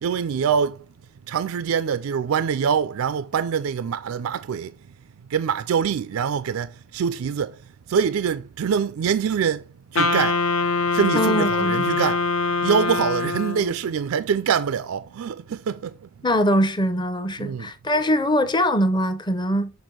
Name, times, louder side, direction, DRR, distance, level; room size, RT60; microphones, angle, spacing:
voice 1, 0.0-0.8 1.3-4.8 5.3-7.6 7.9-10.5 10.9-12.3 12.6-16.1 17.4-17.7, right 7 dB, 80° right, 0.4 m, -24 dB
Wind instrument woodwind instrument, 10.0-13.8, left 4 dB, 70° left, 1.0 m, -23 dB
voice 2, 11.1-11.9 16.2-19.7, equal, 20° left, 0.7 m, -22 dB
6.2 x 5.3 x 3.8 m
head